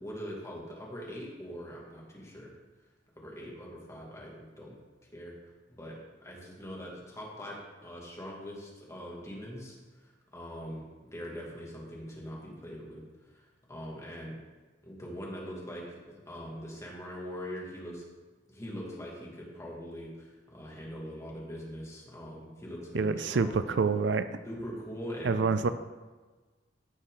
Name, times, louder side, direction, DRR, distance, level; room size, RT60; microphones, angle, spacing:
voice 1, 0.0-2.5 3.2-4.7 5.0-5.3 5.7-14.4 14.8-18.1 18.5-23.6 24.4-25.7, equal, 15° left, -3 dB, 2.4 m, -42 dB
voice 2, 22.9-24.3 25.2-25.7, right 4 dB, 70° right, 12 dB, 0.5 m, -27 dB
15.5 x 6.3 x 3.9 m, 1.3 s
head